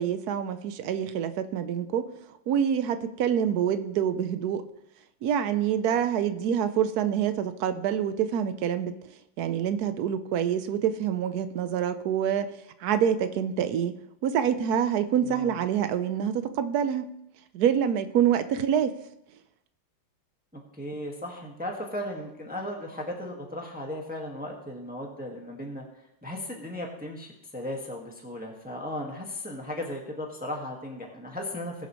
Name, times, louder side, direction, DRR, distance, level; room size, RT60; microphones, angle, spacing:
voice 1, 0.0-2.1 2.5-4.6 5.2-8.9 9.4-12.5 12.8-13.9 14.2-17.1 17.5-18.9, right 9 dB, 65° right, 11 dB, 1.0 m, -26 dB
voice 2, 15.2-15.6 20.5-25.8 26.2-31.7, left 1 dB, 5° right, 0 dB, 1.4 m, -36 dB
21.0 x 7.1 x 3.1 m, 0.82 s
omnidirectional pair, 2.2 m